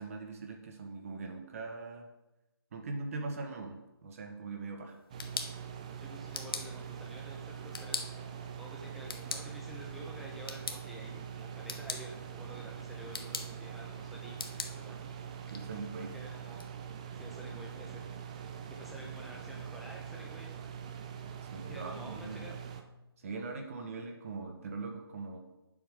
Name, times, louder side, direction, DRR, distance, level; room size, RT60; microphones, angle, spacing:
voice 1, 0.0-2.1 2.7-5.0 15.5-16.1 21.5-22.6 23.2-25.4, right 3 dB, 35° right, 3 dB, 1.3 m, -41 dB
sound 1, 4.9-16.7, left 4 dB, 65° left, 1.2 m, -44 dB
sound 2, 5.1-22.8, right 8 dB, 15° right, 0.4 m, -44 dB
voice 2, 6.0-15.0 16.1-16.6 17.1-18.0 18.8-20.5 21.7-22.5, equal, ahead, -3 dB, 1.0 m, -50 dB
8.4 x 7.4 x 5.0 m, 0.98 s
hypercardioid pair, 165°, 13 cm